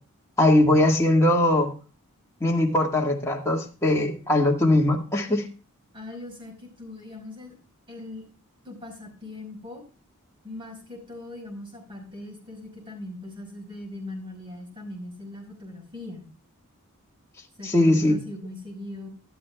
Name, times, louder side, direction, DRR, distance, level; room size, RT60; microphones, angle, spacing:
voice 1, 0.4-1.7 2.4-5.5 17.6-18.2, left 1 dB, 15° left, -2 dB, 1.8 m, -20 dB
voice 2, 5.9-7.5 7.9-8.3 8.6-9.8 10.4-16.3 17.6-19.1, left 1 dB, 25° right, 1 dB, 5.1 m, -40 dB
12.5 x 12.5 x 2.4 m, 0.36 s
head